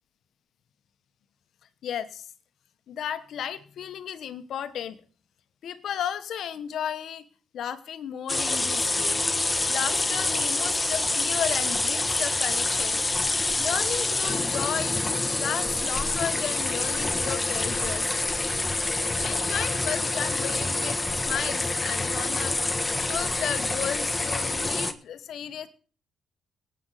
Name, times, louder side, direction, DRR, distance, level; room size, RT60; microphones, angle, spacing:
voice 1, 1.8-2.3 2.9-5.0 5.6-7.3 7.5-9.2 9.7-13.0 13.6-15.0 15.4-18.1 19.2-25.7, left 9 dB, 70° left, 13 dB, 1.1 m, -34 dB
sound 1, 8.3-24.9, left 2 dB, 20° left, 1.3 m, -27 dB
18.5 x 7.8 x 4.0 m, 0.41 s
supercardioid pair, 65°, 0 cm